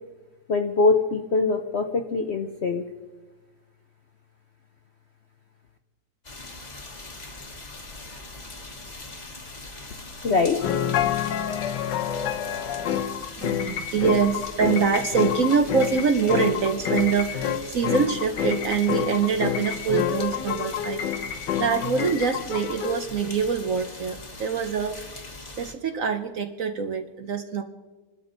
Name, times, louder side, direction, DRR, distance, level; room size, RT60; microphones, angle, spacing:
voice 1, 0.5-2.8 10.2-10.6, left 4 dB, 55° left, 5 dB, 0.8 m, -23 dB
sound 1, 6.2-25.7, left 2 dB, 25° left, 1.3 m, -41 dB
sound 2, 10.6-23.0, left 9 dB, 70° left, 1.4 m, -28 dB
voice 2, 13.4-25.2 25.6-27.6, right 6 dB, 55° right, 7 dB, 1.0 m, -25 dB
28.0 x 12.5 x 3.9 m, 1.2 s
omnidirectional pair, 2.0 m